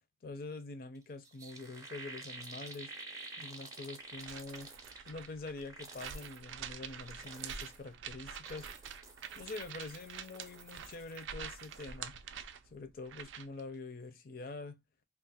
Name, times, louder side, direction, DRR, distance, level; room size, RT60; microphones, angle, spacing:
voice 1, 0.2-2.9 3.4-4.7 5.1-8.7 9.4-12.2 12.7-14.8, left 3 dB, 50° left, 0.5 m, -45 dB
sound 1, 1.0-1.1 1.2-5.3 5.6-6.4 6.9-7.8 8.2-11.2 11.5-11.9, right 3 dB, 20° right, 0.5 m, -50 dB
sound 2, 4.1-13.6, right 7 dB, 80° right, 0.4 m, -47 dB
2.4 x 2.0 x 3.9 m
head